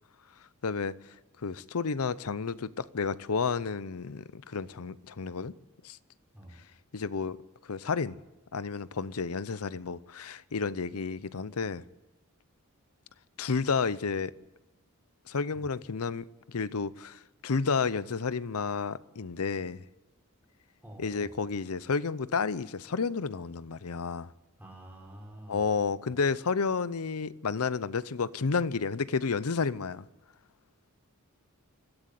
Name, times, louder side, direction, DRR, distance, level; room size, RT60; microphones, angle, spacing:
voice 1, 0.6-1.0 1.4-5.5 5.8-6.0 6.9-7.4 7.7-8.2 8.5-11.8 13.4-14.3 15.3-19.8 21.0-24.3 25.5-30.0, left 5 dB, 90° left, 0.7 m, -31 dB
voice 2, 20.8-21.4 24.6-26.2, right 1 dB, 10° right, 4.5 m, -49 dB
22.0 x 14.5 x 8.4 m
head